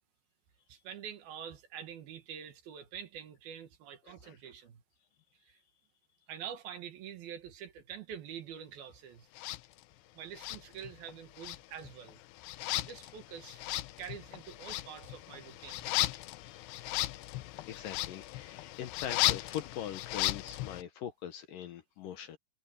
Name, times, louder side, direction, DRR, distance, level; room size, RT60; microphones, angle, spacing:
voice 1, 0.7-4.8 5.4-5.6 6.3-9.3 10.1-12.2 12.8-13.6 14.0-15.9, right 8 dB, 70° right, 3.4 m, -46 dB
voice 2, 4.0-4.4 16.4-16.6 17.4-22.4, left 10 dB, 70° left, 2.4 m, -42 dB
sound 1, 9.4-9.6 10.4-11.1 11.4-20.8, left 17 dB, 85° left, 2.9 m, -36 dB
omnidirectional pair, 4.7 m